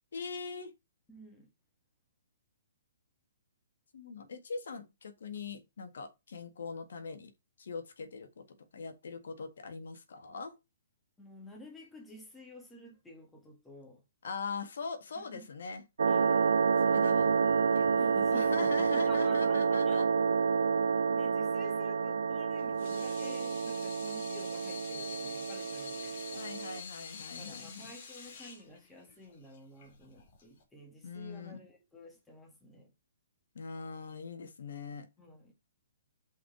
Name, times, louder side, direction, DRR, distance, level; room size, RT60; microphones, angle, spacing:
voice 1, 0.1-0.7 3.9-7.3 7.6-8.4 8.7-10.6 14.2-15.8 16.8-17.3 17.7-20.0 26.3-27.9 31.0-31.7 33.5-35.1, left 4 dB, 75° left, 1.7 m, -41 dB
voice 2, 1.1-1.5 11.2-14.0 15.2-15.5 16.1-16.4 18.0-20.7 21.1-26.6 27.4-32.9 35.2-35.5, left 1 dB, 5° left, 1.9 m, -51 dB
sound 1, 16.0-26.8, right 6 dB, 85° right, 0.5 m, -29 dB
Water tap faucet / Sink (filling or washing), 22.6-30.6, left 6 dB, 45° left, 2.3 m, -47 dB
5.7 x 4.8 x 4.8 m
hypercardioid pair, 160°, 0 cm